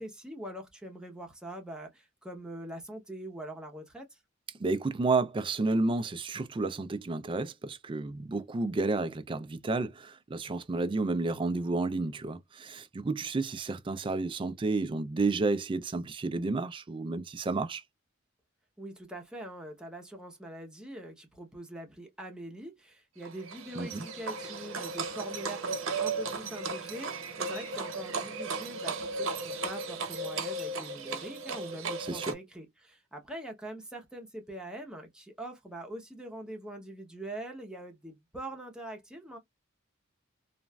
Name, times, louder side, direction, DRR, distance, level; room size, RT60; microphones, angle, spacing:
voice 1, 0.0-4.2 18.8-39.4, right 1 dB, 5° right, 0.7 m, -43 dB
voice 2, 4.6-17.8 23.8-24.1 32.1-32.3, right 3 dB, 25° right, 0.3 m, -31 dB
Livestock farm animals working animals, 23.2-32.3, right 3 dB, 90° right, 0.9 m, -35 dB
3.0 x 2.4 x 2.2 m
head